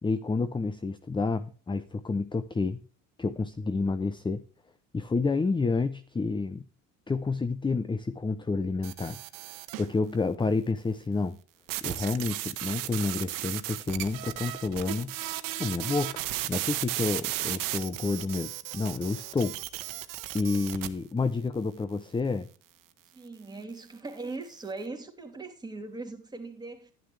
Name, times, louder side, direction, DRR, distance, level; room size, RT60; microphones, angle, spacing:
voice 1, 0.0-2.8 3.2-4.4 4.9-6.6 7.1-9.2 9.8-11.4 11.8-15.2 15.6-16.2 16.5-19.6 20.3-22.5, left 3 dB, 15° left, 0.7 m, -29 dB
sound 1, 8.8-9.9 11.7-20.9, right 15 dB, 60° right, 1.2 m, -35 dB
voice 2, 23.1-26.9, right 3 dB, 10° right, 3.0 m, -40 dB
11.5 x 11.0 x 3.4 m
hypercardioid pair, 80°, 37 cm